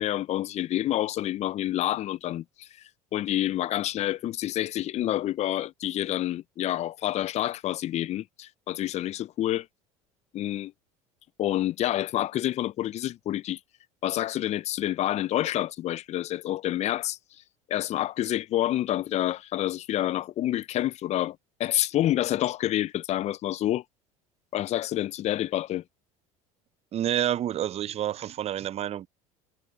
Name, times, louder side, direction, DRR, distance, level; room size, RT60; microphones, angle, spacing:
voice 1, 0.0-2.7 3.1-9.7 10.3-10.7 11.4-13.6 14.0-17.2 17.7-23.8 24.5-25.8, left 13 dB, 40° left, 0.5 m, -28 dB
voice 2, 26.9-29.1, right 11 dB, 35° right, 0.6 m, -28 dB
hypercardioid pair, 75°, 18 cm